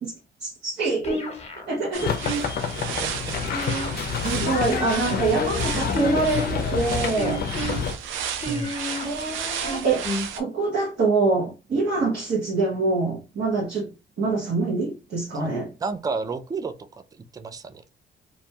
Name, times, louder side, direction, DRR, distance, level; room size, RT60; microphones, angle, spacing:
voice 1, 0.0-1.3 1.7-2.1 4.2-7.5 9.0-10.1 10.4-13.9 14.2-15.7, right 3 dB, 55° right, 1.0 m, -25 dB
sound 1, 1.0-1.7 2.2-2.8 3.5-4.2 4.6-5.3 5.9-6.6 7.2-7.8 8.4-9.1 9.6-10.3, left 1 dB, 35° left, 0.9 m, -29 dB
sound 2, 1.9-10.4, right 8 dB, 80° right, 0.5 m, -34 dB
sound 3, 2.0-7.9, left 6 dB, 50° left, 0.5 m, -28 dB
voice 2, 2.8-3.4 8.5-8.7 15.8-16.7 17.3-17.8, right 4 dB, 20° right, 0.3 m, -31 dB
2.6 x 2.2 x 2.8 m
cardioid pair, 90°, 20 cm